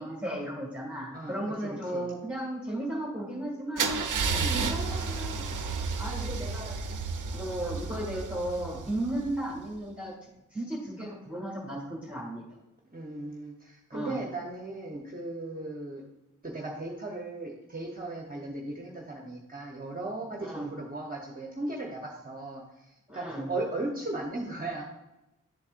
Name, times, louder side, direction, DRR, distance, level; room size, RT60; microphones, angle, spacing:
voice 1, 0.0-3.9 4.5-5.4 5.7-6.8 7.3-12.4 13.9-14.2 20.4-20.7 23.1-23.5, right 1 dB, 5° right, -4 dB, 1.9 m, -35 dB
voice 2, 1.1-2.1 4.3-4.6 12.9-16.0 16.4-24.8, right 2 dB, 30° right, 0 dB, 0.9 m, -37 dB
Car / Engine starting / Idling, 3.8-9.6, right 4 dB, 85° right, 0.6 m, -32 dB
10.5 x 4.2 x 2.5 m, 0.97 s
wide cardioid pair, 70°, 30 cm